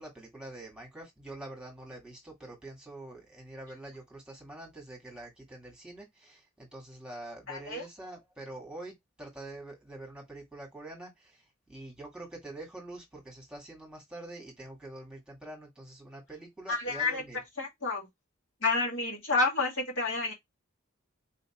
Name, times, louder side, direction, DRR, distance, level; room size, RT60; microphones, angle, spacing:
voice 1, 0.0-8.9 9.2-11.4 11.7-17.4, right 2 dB, 5° right, 1.5 m, -45 dB
voice 2, 7.5-7.8 16.7-17.2 17.6-18.1 18.6-20.3, left 3 dB, 65° left, 2.0 m, -29 dB
4.0 x 2.9 x 2.9 m
head